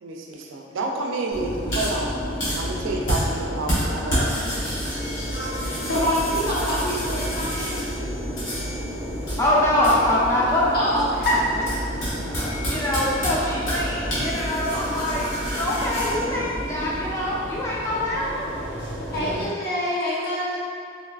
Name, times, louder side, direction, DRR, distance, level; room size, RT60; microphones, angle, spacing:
voice 1, 0.0-2.2 2.6-4.7, right 2 dB, 80° right, 1 dB, 0.4 m, -30 dB
sound 1, 1.3-19.5, equal, 80° left, 1.2 m, -29 dB
voice 2, 5.1-7.8 10.7-11.4 19.1-20.6, equal, 55° left, -8 dB, 0.9 m, -26 dB
voice 3, 9.4-10.8 12.3-18.5 19.1-19.4, left 1 dB, 15° left, -6 dB, 0.4 m, -24 dB
3.9 x 2.3 x 2.3 m, 2.3 s
head